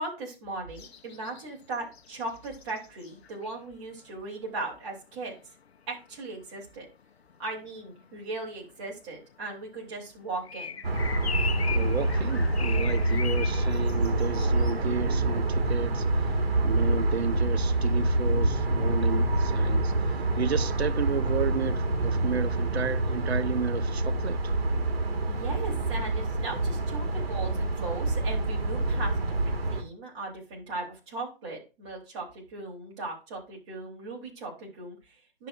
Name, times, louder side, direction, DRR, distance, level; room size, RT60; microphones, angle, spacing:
voice 1, 0.0-5.4 5.9-6.9 7.4-10.8 25.3-35.5, right 2 dB, 30° right, 3.1 m, -38 dB
sound 1, 0.7-15.6 15.9-16.1, left 6 dB, 85° left, 0.8 m, -40 dB
sound 2, 10.8-29.8, right 2 dB, 70° right, 1.7 m, -26 dB
voice 2, 11.7-24.4, right 7 dB, 85° right, 0.7 m, -33 dB
11.0 x 6.6 x 2.5 m
hypercardioid pair, 160°, 31 cm